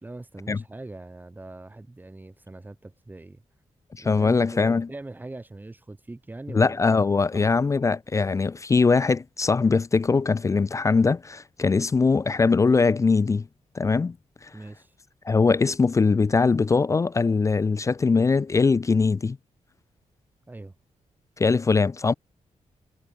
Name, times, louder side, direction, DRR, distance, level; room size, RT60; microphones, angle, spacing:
voice 1, 0.0-3.4 4.0-6.8 7.3-7.6 14.5-15.0 20.5-20.7, right 2 dB, 15° right, 4.7 m, -42 dB
voice 2, 4.0-4.9 6.5-13.5 13.7-14.1 15.3-19.4 21.4-22.1, left 4 dB, 25° left, 0.5 m, -21 dB
wide cardioid pair, 165°, 12 cm